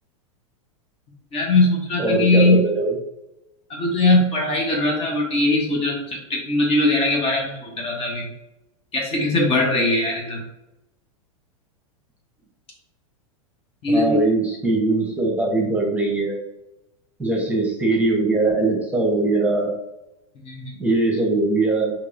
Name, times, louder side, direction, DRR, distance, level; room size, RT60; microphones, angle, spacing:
voice 1, 1.3-2.6 3.7-8.3 8.9-10.4 13.8-14.2 20.4-20.8, left 2 dB, 35° left, -1 dB, 1.1 m, -20 dB
voice 2, 2.0-2.9 13.9-16.4 17.2-19.7 20.8-21.9, right 2 dB, 10° right, -2 dB, 1.2 m, -21 dB
4.6 x 3.0 x 2.6 m, 0.90 s
hypercardioid pair, 100°, 18 cm